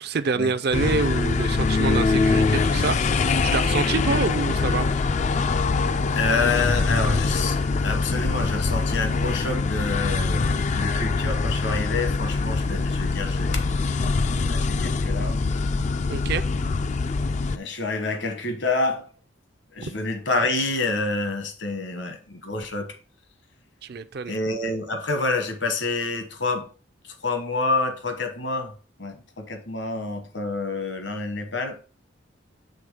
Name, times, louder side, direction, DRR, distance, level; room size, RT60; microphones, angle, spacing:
voice 1, 0.0-3.0 3.4-4.9 16.1-16.4 19.8-19.9 23.8-24.4, right 4 dB, 55° right, 0.5 m, -26 dB
sound 1, 0.7-17.6, left 4 dB, 40° left, 0.3 m, -23 dB
voice 2, 6.1-7.6 7.8-13.8 14.3-15.4 17.5-19.1 19.7-23.0 24.3-26.7 27.2-31.8, left 3 dB, 65° left, 1.3 m, -28 dB
7.2 x 3.6 x 4.9 m
head